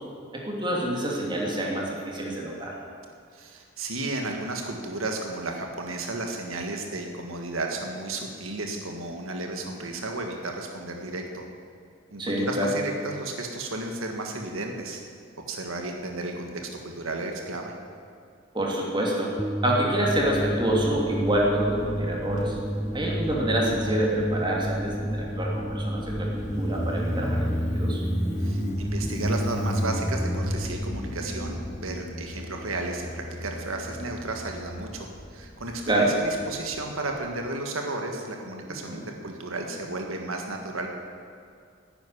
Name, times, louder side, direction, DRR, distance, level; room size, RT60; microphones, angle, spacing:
voice 1, 0.3-2.7 12.2-12.7 18.5-19.3 19.6-22.6 22.9-26.3 26.5-28.0 35.9-36.1 38.9-39.0, right 1 dB, 25° right, -2 dB, 2.9 m, -27 dB
voice 2, 3.3-11.4 12.1-15.0 15.5-17.7 28.4-40.9, right 2 dB, 80° right, 2 dB, 1.6 m, -33 dB
sound 1, 19.4-32.5, equal, 5° right, 0.5 m, -32 dB
Motorcycle, 20.1-37.3, equal, 35° left, 1.6 m, -34 dB
10.5 x 10.5 x 9.9 m, 2.4 s
head